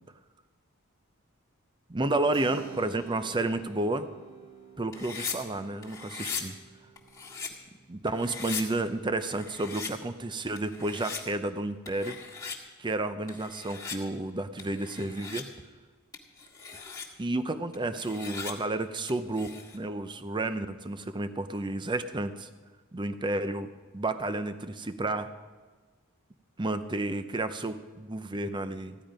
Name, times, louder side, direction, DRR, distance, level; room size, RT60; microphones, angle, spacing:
voice 1, 1.9-4.1 4.8-6.5 7.9-12.2 12.8-15.5 17.2-19.5 19.7-22.5 22.9-23.7 23.9-25.3 26.6-29.0, right 2 dB, 20° right, 11 dB, 0.6 m, -31 dB
Keyboard (musical), 2.3-10.7, right 6 dB, 55° right, 3.5 m, -52 dB
sound 1, 4.9-5.4 5.8-6.4 7.0-7.5 8.1-8.6 9.2-9.9 10.6-11.2 11.9-12.6 13.3-14.0 14.6-15.4 16.1-17.1 17.7-18.5 19.1-19.8, left 6 dB, 15° left, 1.9 m, -39 dB
15.5 x 11.0 x 5.1 m, 1.4 s
head